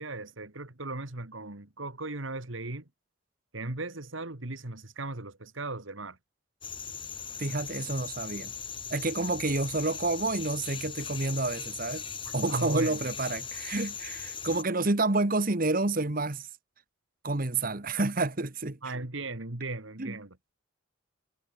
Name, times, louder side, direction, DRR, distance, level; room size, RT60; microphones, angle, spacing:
voice 1, 0.0-2.8 3.5-6.2 12.2-13.0 18.8-20.3, right 2 dB, 75° right, 2.5 m, -37 dB
sound 1, 6.6-14.6, left 7 dB, 25° left, 3.4 m, -39 dB
voice 2, 7.4-8.5 8.9-12.0 12.3-16.5 17.2-18.8 20.0-20.2, right 2 dB, 45° right, 1.5 m, -29 dB
head